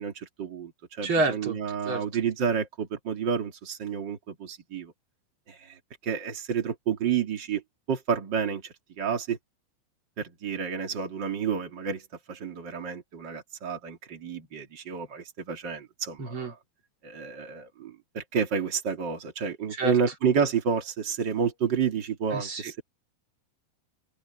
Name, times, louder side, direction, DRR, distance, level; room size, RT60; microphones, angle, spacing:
voice 1, 0.0-4.9 5.5-5.8 6.0-7.6 7.9-9.4 10.2-12.0 12.3-16.5 17.0-22.8, right 6 dB, 85° right, 1.0 m, -30 dB
voice 2, 1.0-1.6 1.8-2.0 16.2-16.5 19.7-20.0 22.3-22.8, right 3 dB, 30° right, 3.2 m, -28 dB
omnidirectional pair, 5.9 m